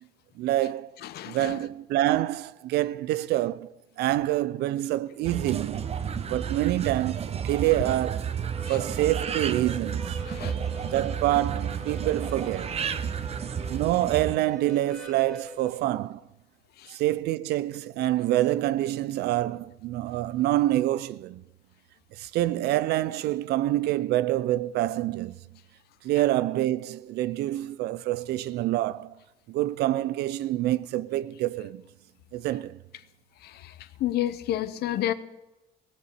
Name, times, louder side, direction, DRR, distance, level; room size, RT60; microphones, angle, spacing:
voice 1, 0.4-0.9 1.3-5.8 6.3-8.4 8.7-10.2 10.8-12.8 13.7-16.2 16.9-21.4 22.2-25.4 26.0-29.1 29.5-31.8 32.3-32.8, right 15 dB, 75° right, 0.5 m, -26 dB
voice 2, 1.0-1.6 8.7-8.8 10.3-10.5 16.8-17.0 33.4-33.7 34.0-35.1, left 12 dB, 70° left, 0.8 m, -30 dB
sound 1, 5.2-14.4, right 7 dB, 35° right, 0.8 m, -32 dB
Harmonica, 8.5-15.8, left 1 dB, ahead, 1.7 m, -44 dB
17.0 x 6.8 x 8.7 m
cardioid pair, 110°, 17 cm